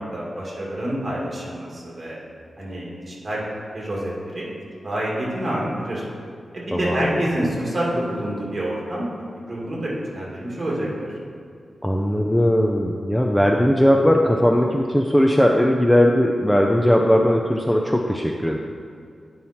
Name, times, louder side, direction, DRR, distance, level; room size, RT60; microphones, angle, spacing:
voice 1, 0.0-2.2 2.6-4.5 4.8-6.0 6.5-9.1 9.5-11.1, right 1 dB, 30° right, -5 dB, 2.2 m, -27 dB
voice 2, 6.7-7.1 11.8-18.6, equal, 5° left, 1 dB, 0.4 m, -18 dB
9.1 x 5.5 x 4.3 m, 2.3 s
wide cardioid pair, 145°, 0 cm